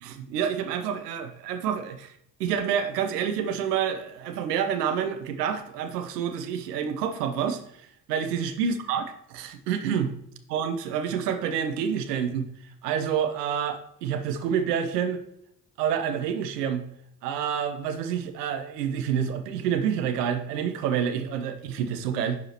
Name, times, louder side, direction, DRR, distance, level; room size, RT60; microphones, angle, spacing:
voice 1, 0.0-2.1 2.4-7.6 8.1-10.1 10.5-12.5 12.8-15.2 15.8-16.8 17.2-22.4, right 8 dB, 80° right, 8 dB, 0.7 m, -28 dB
10.5 x 4.8 x 2.9 m, 0.69 s
figure-of-eight pair, 40°, 47 cm